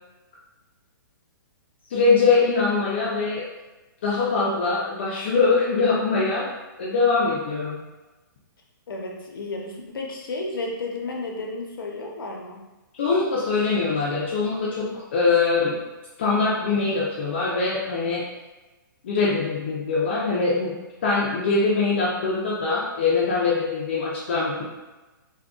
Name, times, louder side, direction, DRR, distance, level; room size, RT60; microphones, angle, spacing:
voice 1, 1.9-3.4 4.0-6.5 6.8-7.8 13.0-15.8 16.2-18.3 19.0-24.6, left 4 dB, 30° left, -6 dB, 0.4 m, -23 dB
voice 2, 8.9-12.6, left 2 dB, 85° left, 0 dB, 0.7 m, -32 dB
3.6 x 2.1 x 2.3 m, 1.1 s
hypercardioid pair, 175°, 11 cm